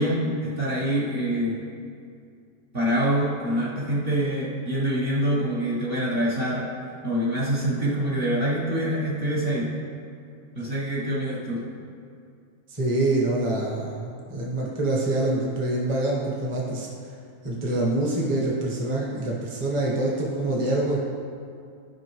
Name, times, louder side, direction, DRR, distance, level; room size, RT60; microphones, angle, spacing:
voice 1, 0.0-1.6 2.7-6.7 7.0-9.7 10.5-11.6, right 1 dB, 40° right, -7 dB, 1.3 m, -25 dB
voice 2, 12.7-16.9 17.4-21.0, right 2 dB, 20° right, -4 dB, 1.1 m, -25 dB
12.0 x 5.4 x 3.1 m, 2.4 s
omnidirectional pair, 1.6 m